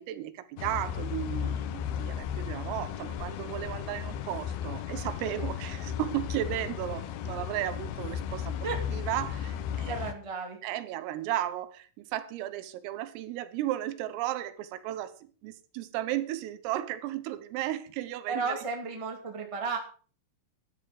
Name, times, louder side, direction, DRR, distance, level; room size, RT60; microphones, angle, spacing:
voice 1, 0.0-10.0 10.6-18.7, right 13 dB, 90° right, 3.8 m, -35 dB
sound 1, 0.6-10.1, left 9 dB, 85° left, 2.1 m, -35 dB
voice 2, 9.8-10.6 18.3-19.8, right 4 dB, 30° right, 0.5 m, -33 dB
12.5 x 12.0 x 5.2 m
omnidirectional pair, 5.8 m